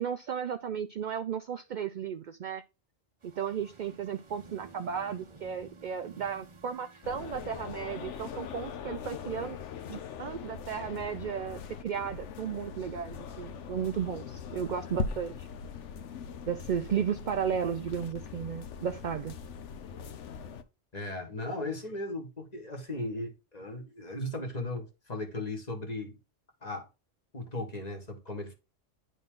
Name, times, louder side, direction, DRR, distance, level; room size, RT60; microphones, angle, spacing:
voice 1, 0.0-2.6 3.2-9.6 9.9-15.5 16.5-19.4, right 8 dB, 65° right, 0.4 m, -34 dB
sound 1, 3.2-8.8, right 4 dB, 30° right, 0.7 m, -54 dB
sound 2, 7.0-20.6, left 6 dB, 70° left, 1.0 m, -41 dB
voice 2, 20.9-26.2 26.6-26.9 27.3-28.5, left 2 dB, 35° left, 1.7 m, -37 dB
10.0 x 3.9 x 3.8 m
omnidirectional pair, 1.3 m